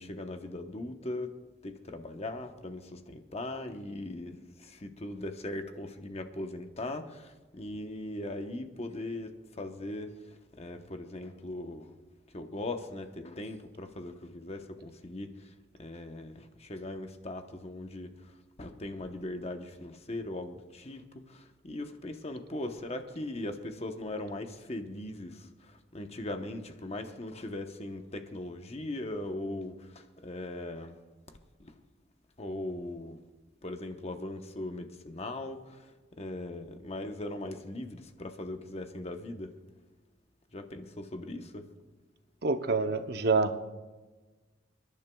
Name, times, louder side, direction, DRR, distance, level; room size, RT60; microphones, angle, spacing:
voice 1, 0.0-1.3 1.6-11.9 12.3-31.0 31.3-31.7 32.4-33.2 33.6-39.6 40.5-41.7, left 1 dB, 35° left, 6 dB, 0.9 m, -39 dB
voice 2, 42.4-43.6, right 3 dB, 55° right, 8 dB, 0.7 m, -27 dB
30.0 x 11.0 x 2.3 m, 1.2 s
head